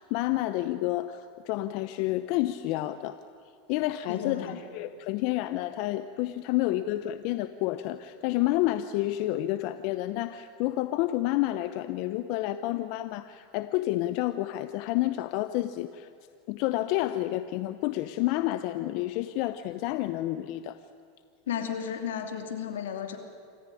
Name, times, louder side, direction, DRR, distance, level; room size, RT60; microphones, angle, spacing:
voice 1, 0.0-3.2 3.7-16.1 16.5-20.8, left 15 dB, 60° left, 12 dB, 0.8 m, -29 dB
voice 2, 4.1-4.6 21.5-23.2, left 8 dB, 90° left, 6 dB, 2.8 m, -33 dB
27.0 x 14.0 x 9.9 m, 2.3 s
supercardioid pair, 115°, 0 cm